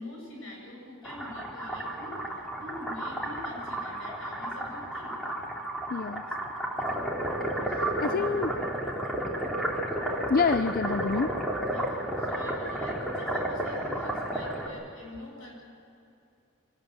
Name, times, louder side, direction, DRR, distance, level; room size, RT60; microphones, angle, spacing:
voice 1, 0.0-5.2 8.0-8.3 10.5-10.7 11.7-15.5, left 1 dB, 65° left, -1 dB, 7.8 m, -45 dB
sound 1, 1.0-14.7, right 1 dB, ahead, 3.0 m, -32 dB
voice 2, 5.9-6.2 7.7-8.5 10.3-11.3, left 4 dB, 45° left, 11 dB, 0.5 m, -27 dB
24.5 x 19.0 x 7.8 m, 2.6 s
head